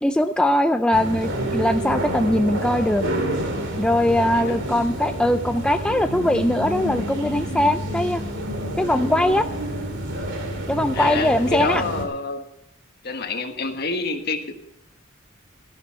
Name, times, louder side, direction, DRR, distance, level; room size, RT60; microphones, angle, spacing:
voice 1, 0.0-3.0 3.8-8.2 8.8-9.5 10.7-11.8, left 1 dB, 5° left, 7 dB, 0.4 m, -21 dB
sound 1, 0.9-12.0, right 1 dB, 60° right, 2.5 m, -28 dB
voice 2, 10.9-12.4 13.0-14.5, left 4 dB, 50° left, 6 dB, 1.5 m, -28 dB
14.0 x 11.5 x 4.2 m, 0.82 s
head